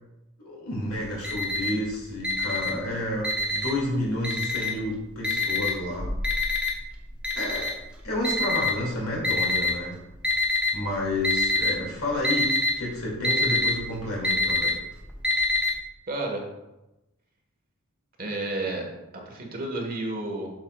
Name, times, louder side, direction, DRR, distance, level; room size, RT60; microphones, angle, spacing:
voice 1, 0.4-6.1 7.3-7.8 8.0-10.0 10.7-14.8, left 1 dB, 70° left, -3 dB, 2.4 m, -30 dB
Alarm, 0.9-1.9 2.2-3.9 4.2-4.9 5.2-9.7 10.2-10.9 11.1-11.8 12.0-15.7, left 3 dB, 5° right, 0.9 m, -25 dB
voice 2, 16.1-16.4 18.2-18.9 19.2-20.5, right 2 dB, 40° right, 1 dB, 1.4 m, -31 dB
7.8 x 6.7 x 2.4 m, 0.97 s
head